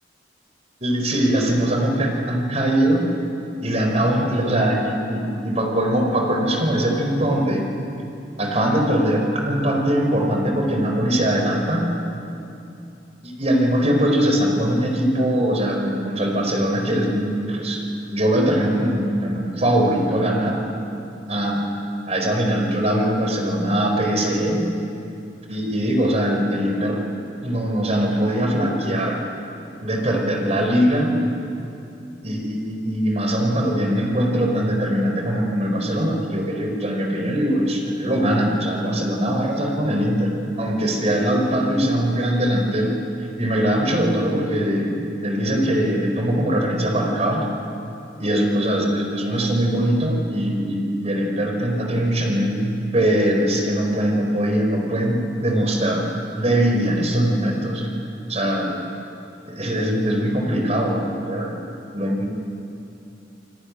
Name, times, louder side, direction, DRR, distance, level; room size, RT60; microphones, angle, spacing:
voice 1, 0.8-3.1 3.6-7.7 8.4-11.9 13.2-17.8 18.1-20.6 21.3-21.6 22.1-24.7 25.5-27.1 27.4-29.2 29.8-31.2 32.2-42.9 43.4-47.4 48.2-52.6 52.9-56.1 56.3-57.9 58.3-58.8 59.5-61.6 61.9-62.3, equal, 35° right, 1 dB, 4.8 m, -21 dB
29.0 x 20.5 x 10.0 m, 2.8 s
head